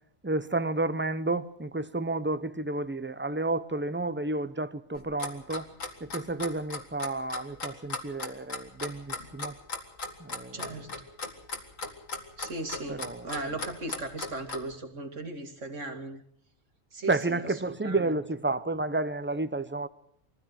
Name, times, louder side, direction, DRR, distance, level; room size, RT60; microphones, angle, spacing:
voice 1, 0.2-5.7 6.0-9.6 10.2-10.9 12.9-13.3 17.1-19.9, right 2 dB, 10° right, 0.6 m, -31 dB
Clock, 5.0-14.7, left 3 dB, 80° left, 2.6 m, -36 dB
voice 2, 10.5-10.9 12.4-16.2 16.9-17.5 17.8-18.1, right 2 dB, 65° right, 2.7 m, -37 dB
22.5 x 15.0 x 8.0 m
omnidirectional pair, 1.3 m